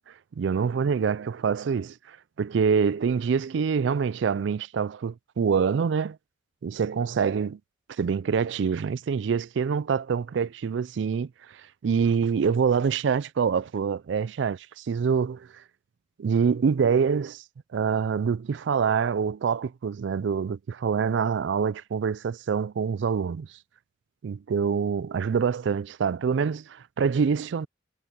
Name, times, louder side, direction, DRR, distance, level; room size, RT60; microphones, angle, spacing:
voice 1, 0.4-6.2 6.6-7.6 7.9-15.6 16.2-17.4 17.7-23.5 24.2-27.7, right 6 dB, 75° right, 0.4 m, -26 dB
head